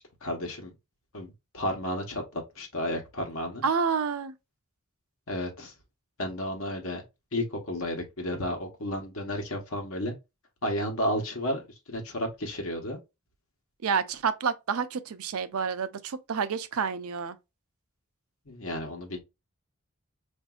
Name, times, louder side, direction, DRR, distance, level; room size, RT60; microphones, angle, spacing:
voice 1, 0.2-0.7 1.1-3.6 5.3-5.7 6.2-7.0 7.3-10.1 10.6-13.0 18.5-19.2, left 1 dB, 65° left, 1.1 m, -32 dB
voice 2, 3.6-4.3 13.8-17.4, right 6 dB, 70° right, 0.5 m, -29 dB
4.9 x 2.6 x 2.3 m
head